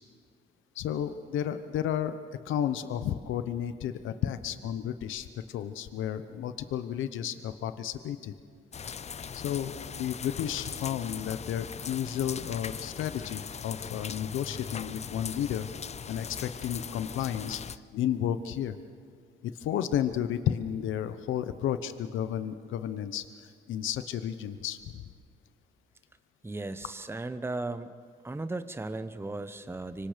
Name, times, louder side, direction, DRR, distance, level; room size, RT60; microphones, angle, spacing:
voice 1, 0.7-2.2 2.4-8.3 9.3-15.7 16.1-17.6 17.9-18.8 19.4-25.0, left 10 dB, 80° left, 11 dB, 0.9 m, -32 dB
sound 1, 8.7-17.8, left 7 dB, 35° left, 0.5 m, -39 dB
voice 2, 26.4-27.9 28.2-30.1, right 2 dB, 10° right, 11 dB, 0.9 m, -36 dB
25.5 x 24.0 x 5.2 m, 2.1 s
cardioid pair, 90°, 20 cm